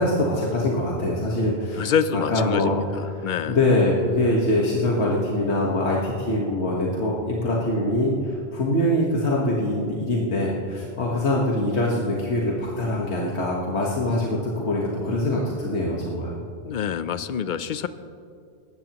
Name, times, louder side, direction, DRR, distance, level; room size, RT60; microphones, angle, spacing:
voice 1, 0.0-2.7 3.1-16.4, left 1 dB, 80° left, -3 dB, 1.7 m, -24 dB
voice 2, 1.8-3.6 16.6-17.9, left 7 dB, 55° left, 13 dB, 0.6 m, -26 dB
19.0 x 14.0 x 3.0 m, 2.4 s
omnidirectional pair, 1.1 m